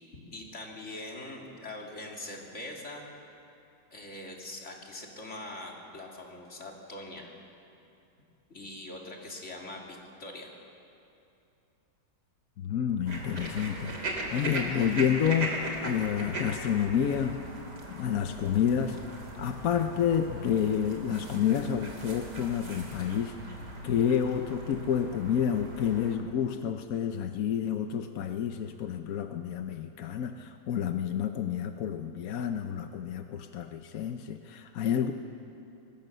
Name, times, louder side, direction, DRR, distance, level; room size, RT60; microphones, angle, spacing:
voice 1, 0.1-3.0 3.9-7.4 8.5-10.5, left 1 dB, 35° left, 0 dB, 3.1 m, -42 dB
voice 2, 12.6-17.4 17.9-19.0 19.4-23.3 23.8-35.1, left 8 dB, 60° left, 7 dB, 0.9 m, -29 dB
sound 1, 13.0-26.1, right 2 dB, 50° right, 3.5 m, -39 dB
25.0 x 20.5 x 6.7 m, 2.7 s
omnidirectional pair, 2.3 m